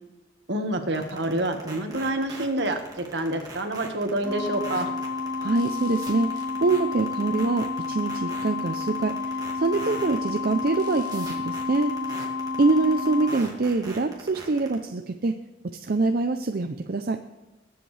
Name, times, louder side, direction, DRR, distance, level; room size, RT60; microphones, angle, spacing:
voice 1, 0.5-4.9, right 1 dB, 70° right, 5 dB, 1.5 m, -27 dB
sound 1, 0.9-14.7, right 3 dB, 20° right, 2.2 m, -41 dB
sound 2, 4.2-13.3, left 4 dB, 15° left, 4.6 m, -31 dB
voice 2, 5.4-12.2 12.6-15.4 15.6-17.2, right 3 dB, 55° right, 6 dB, 0.6 m, -25 dB
20.5 x 7.9 x 3.3 m, 1.1 s
head